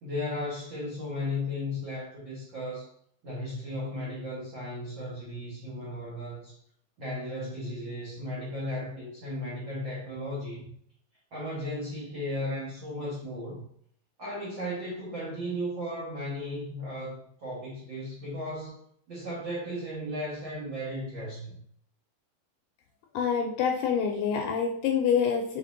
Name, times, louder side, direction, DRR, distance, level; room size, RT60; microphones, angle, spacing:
voice 1, 0.0-2.9 3.2-6.6 7.0-10.7 11.3-13.6 14.2-21.6, left 1 dB, 80° right, -7 dB, 1.0 m, -35 dB
voice 2, 23.2-25.5, left 7 dB, 80° left, 2 dB, 2.0 m, -26 dB
5.0 x 3.9 x 2.6 m, 0.63 s
omnidirectional pair, 4.1 m